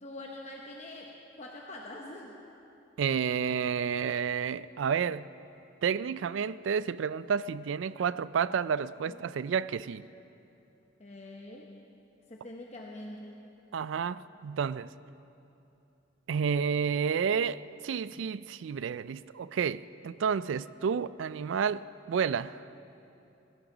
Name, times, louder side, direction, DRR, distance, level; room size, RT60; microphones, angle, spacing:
voice 1, 0.0-2.3 9.1-9.2 11.0-11.7 12.3-13.4, left 1 dB, 35° left, 1.0 m, -44 dB
voice 2, 3.0-5.3 5.8-10.0 13.7-14.9 16.3-22.6, right 6 dB, 75° right, 0.3 m, -30 dB
20.5 x 16.5 x 3.9 m
head